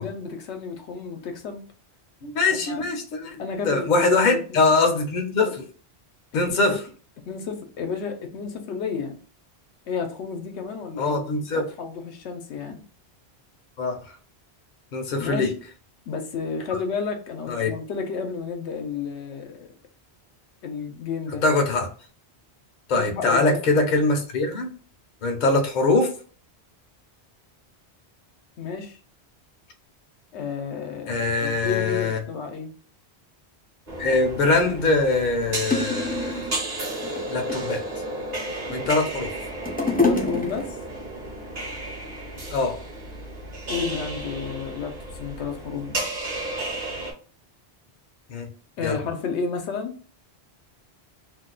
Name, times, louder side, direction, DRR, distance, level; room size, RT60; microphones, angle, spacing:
voice 1, 0.0-1.6 2.5-2.9 3.4-4.6 6.3-6.6 7.3-9.2 9.9-11.2 11.5-12.8 15.2-15.6 16.1-19.7 20.6-21.4 23.0-23.6 28.6-29.0 30.3-32.8 40.0-40.8 43.7-46.1 48.8-50.0, left 5 dB, 85° left, 0.9 m, -31 dB
voice 2, 2.2-5.6 6.3-6.8 11.0-11.7 13.8-14.0 14.9-15.5 17.5-17.8 21.4-21.9 22.9-24.7 25.2-26.1 31.1-32.2 34.0-36.4 37.3-37.8 38.7-39.3 42.5-42.8 48.3-48.5 48.8-49.0, left 3 dB, 50° left, 0.7 m, -22 dB
sound 1, 33.9-47.1, right 1 dB, 40° right, 1.0 m, -33 dB
sound 2, 35.3-35.4 35.7-36.5 37.0-37.8 38.5-39.1 39.3-41.0 41.7-41.8, left 3 dB, 15° left, 0.3 m, -26 dB
2.5 x 2.2 x 3.8 m
omnidirectional pair, 1.1 m